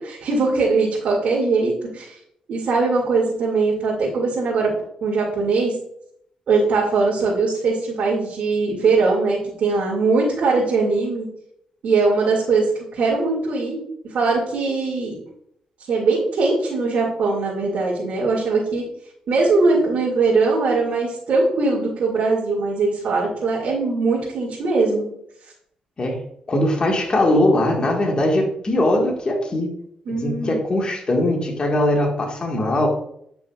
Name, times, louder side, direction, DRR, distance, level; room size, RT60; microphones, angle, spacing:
voice 1, 0.0-2.1 2.5-4.7 5.0-5.7 6.5-11.3 11.8-15.2 15.9-18.8 19.3-25.1 30.1-30.6, right 3 dB, 75° right, -5 dB, 2.3 m, -21 dB
voice 2, 26.5-29.7 30.2-32.9, left 1 dB, 40° left, 1 dB, 1.7 m, -20 dB
9.4 x 5.9 x 2.4 m, 0.71 s
cardioid pair, 85°, 2 cm